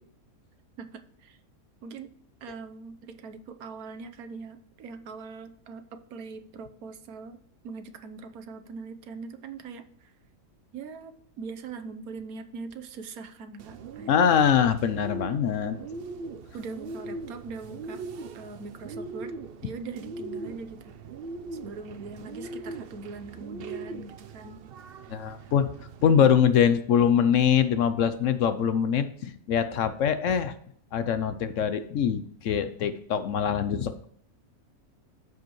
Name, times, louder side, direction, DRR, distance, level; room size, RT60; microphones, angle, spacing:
voice 1, 0.8-1.4 1.8-2.1 2.4-5.8 6.1-7.4 7.6-10.1 10.7-14.1 16.5-18.0 18.3-19.4 19.6-20.9 21.5-24.6 25.4-25.5, right 4 dB, 80° right, 8 dB, 1.3 m, -41 dB
Bird, 13.6-26.3, right 3 dB, 60° right, 0.6 m, -40 dB
voice 2, 14.1-15.8 25.1-25.7 26.0-30.5 30.9-34.1, left 8 dB, 65° left, 11 dB, 0.9 m, -23 dB
14.0 x 4.8 x 3.1 m, 0.65 s
omnidirectional pair, 1.5 m